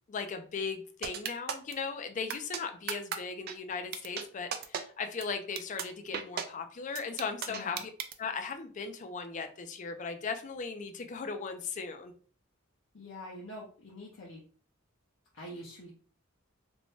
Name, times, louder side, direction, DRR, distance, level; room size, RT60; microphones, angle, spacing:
voice 1, 0.1-7.9 8.2-12.1, left 5 dB, 40° left, 7 dB, 0.4 m, -37 dB
sound 1, 1.0-1.7 2.3-2.6 2.9-3.2 3.5-3.6 3.9-4.2 4.5-4.8 5.2-5.3 5.6-5.8 6.1-6.4 7.0-8.1, right 8 dB, 50° right, 0.3 m, -34 dB
voice 2, 7.5-7.8 12.9-14.4 15.3-15.9, left 1 dB, 70° left, -4 dB, 0.7 m, -45 dB
2.6 x 2.1 x 3.0 m, 0.42 s
head